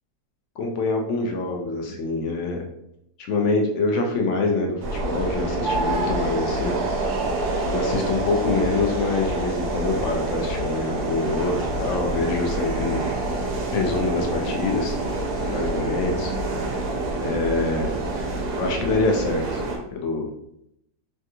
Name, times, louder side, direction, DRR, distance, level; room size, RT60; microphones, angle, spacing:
voice 1, 0.6-2.6 3.2-6.7 7.7-13.0 13.7-15.0 15.4-16.3 17.2-17.9 18.6-19.6 19.9-20.3, left 3 dB, 70° left, 2 dB, 0.7 m, -25 dB
sound 1, 4.8-19.8, right 2 dB, 85° right, 1.2 m, -27 dB
3.4 x 2.4 x 2.7 m, 0.77 s
omnidirectional pair, 1.7 m